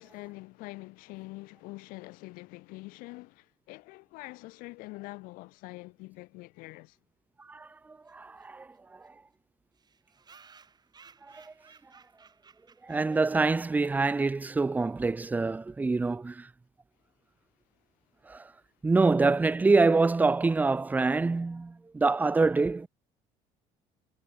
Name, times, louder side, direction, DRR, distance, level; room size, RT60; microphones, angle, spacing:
voice 1, 0.0-7.0, left 23 dB, 80° left, 0.9 m, -45 dB
voice 2, 7.5-9.1 11.3-11.5 12.8-16.5 18.3-18.5 18.8-22.9, right 3 dB, 10° right, 0.4 m, -26 dB
sound 1, 8.0-8.1 8.4-8.5 8.7-8.8 9.0-9.1 9.7-14.0, right 5 dB, 30° right, 2.3 m, -58 dB
cardioid pair, 105°, 15 cm